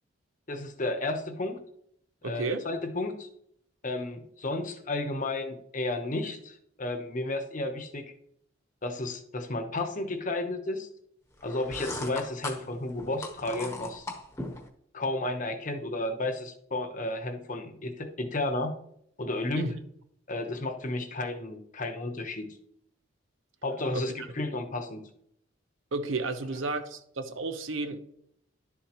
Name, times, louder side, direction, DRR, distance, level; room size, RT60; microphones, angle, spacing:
voice 1, 0.5-1.6 2.2-3.3 3.8-8.0 8.8-10.9 11.4-14.1 14.9-18.7 19.2-19.7 20.3-22.5 23.6-25.0, left 2 dB, 40° left, 7 dB, 1.0 m, -32 dB
voice 2, 2.2-2.6 19.6-19.7 23.9-24.3 25.9-28.1, right 3 dB, 80° right, 8 dB, 0.9 m, -32 dB
sound 1, 11.4-14.7, left 2 dB, 15° left, 1.1 m, -38 dB
11.5 x 7.4 x 3.0 m, 0.70 s
head